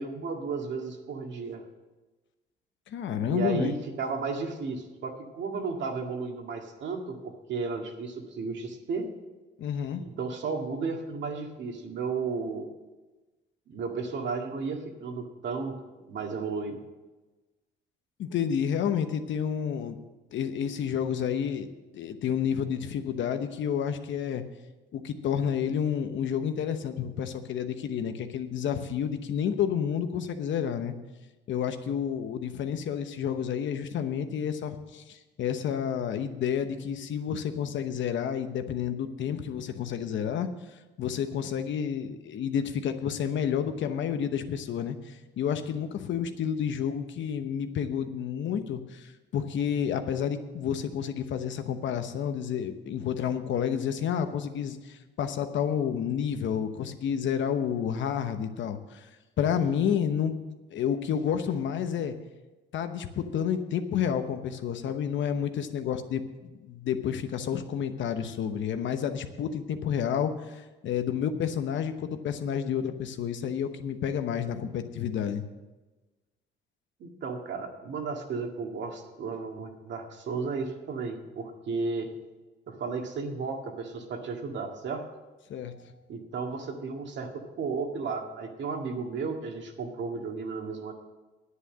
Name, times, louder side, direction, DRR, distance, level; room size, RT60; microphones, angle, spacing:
voice 1, 0.0-1.6 3.3-9.1 10.0-12.7 13.7-15.8 16.1-16.8 77.0-82.1 82.7-85.0 86.1-90.9, right 4 dB, 65° right, 3 dB, 2.0 m, -34 dB
voice 2, 2.9-3.7 9.6-10.0 18.2-20.0 20.3-21.7 21.9-24.4 24.9-30.9 31.5-40.5 41.0-59.0 59.4-60.3 60.7-62.1 62.7-75.4 85.5-85.9, left 8 dB, 70° left, 8 dB, 1.0 m, -30 dB
9.7 x 8.5 x 7.5 m, 1.2 s
cardioid pair, 90°, 20 cm